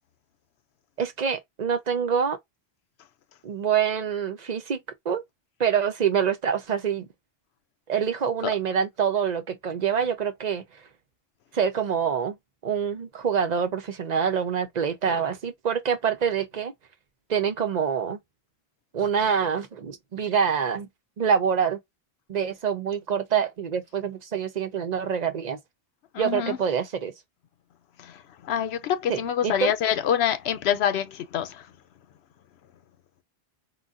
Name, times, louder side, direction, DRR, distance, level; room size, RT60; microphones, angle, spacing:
voice 1, 1.0-2.4 3.4-4.8 5.0-5.2 5.6-7.1 7.9-10.6 11.5-12.4 12.6-16.7 17.3-18.2 18.9-20.9 21.2-21.8 22.3-25.6 26.2-27.1 29.1-29.7, right 7 dB, 50° right, 0.7 m, -26 dB
voice 2, 26.1-26.6 28.0-28.2 28.4-31.6, left 9 dB, 90° left, 0.9 m, -26 dB
4.0 x 2.2 x 2.4 m
omnidirectional pair, 1.0 m